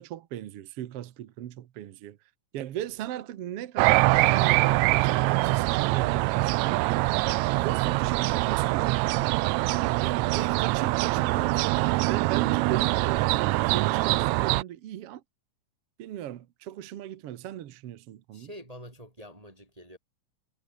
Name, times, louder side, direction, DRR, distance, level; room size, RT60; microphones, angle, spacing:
voice 1, 0.0-2.2 2.5-6.8 7.4-9.6 10.0-15.2 16.0-18.5, right 12 dB, 60° right, 1.7 m, -38 dB
sound 1, 3.8-14.6, right 20 dB, 85° right, 1.6 m, -24 dB
voice 2, 18.3-20.0, equal, 10° right, 2.9 m, -46 dB
omnidirectional pair, 3.8 m